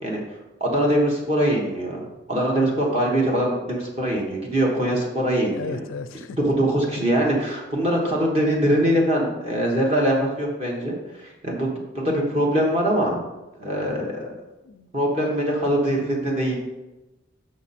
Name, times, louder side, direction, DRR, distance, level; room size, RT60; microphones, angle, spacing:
voice 1, 0.0-2.0 2.3-5.8 6.4-13.2 13.6-14.3 14.9-16.6, right 1 dB, 30° right, -2 dB, 1.2 m, -23 dB
voice 2, 5.5-6.4 14.6-14.9 15.2-15.4, left 4 dB, 85° left, 11 dB, 0.4 m, -35 dB
6.4 x 6.1 x 4.2 m, 1.0 s
head